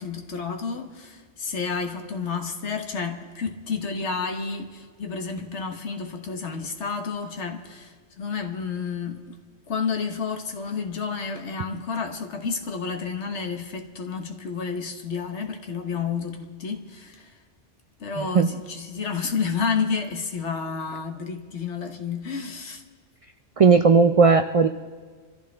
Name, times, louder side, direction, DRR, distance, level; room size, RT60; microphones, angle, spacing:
voice 1, 0.0-9.4 9.7-17.3 18.0-22.8, left 5 dB, 75° left, 1.5 m, -30 dB
voice 2, 23.6-24.7, right 5 dB, 60° right, 0.3 m, -16 dB
25.0 x 14.5 x 3.4 m
omnidirectional pair, 1.2 m